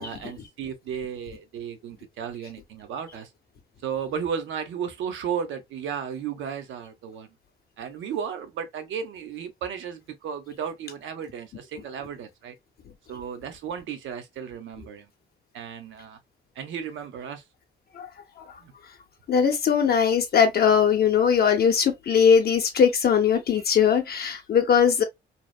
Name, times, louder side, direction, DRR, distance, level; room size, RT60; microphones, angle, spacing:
voice 1, 0.0-3.3 3.8-7.3 7.8-12.5 13.1-15.1 15.5-16.2 16.6-17.4 18.6-18.7, right 7 dB, 75° right, 0.7 m, -34 dB
voice 2, 19.3-25.0, left 7 dB, 50° left, 0.6 m, -20 dB
2.8 x 2.1 x 2.2 m
cardioid pair, 90°, 20 cm